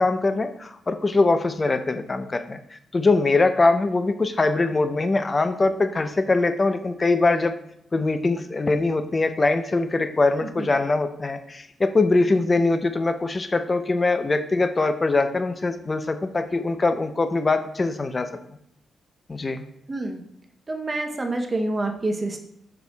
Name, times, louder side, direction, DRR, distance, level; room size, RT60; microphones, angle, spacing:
voice 1, 0.0-7.5 7.9-18.3 19.3-19.6, left 3 dB, 30° left, 9 dB, 0.4 m, -22 dB
voice 2, 19.9-20.2 20.7-22.4, right 2 dB, 30° right, 4 dB, 0.6 m, -27 dB
5.4 x 4.3 x 2.2 m, 0.72 s
cardioid pair, 85°, 0 cm